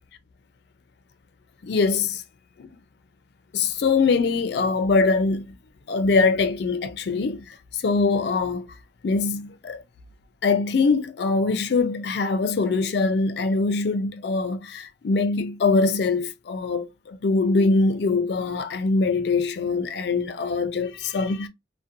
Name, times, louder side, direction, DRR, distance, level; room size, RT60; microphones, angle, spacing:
voice 1, 1.6-2.2 2.6-2.7 3.5-5.6 5.9-7.4 7.7-8.7 9.0-9.8 10.4-21.5, left 4 dB, 60° left, 0.4 m, -23 dB
2.5 x 2.1 x 2.5 m
head